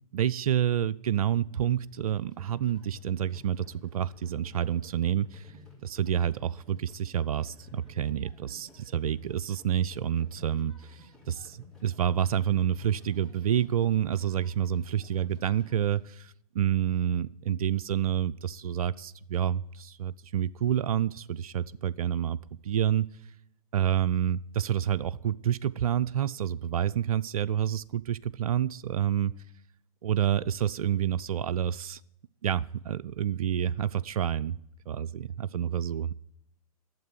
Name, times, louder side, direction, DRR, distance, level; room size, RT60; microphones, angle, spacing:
voice 1, 0.1-5.6 5.8-23.1 23.7-29.3 30.0-32.0 32.4-34.6 34.9-36.1, right 10 dB, 70° right, 17 dB, 0.4 m, -28 dB
sound 1, 2.0-16.0, left 3 dB, ahead, 3.9 m, -54 dB
12.0 x 7.4 x 8.0 m, 0.76 s
figure-of-eight pair, 105°, 19 cm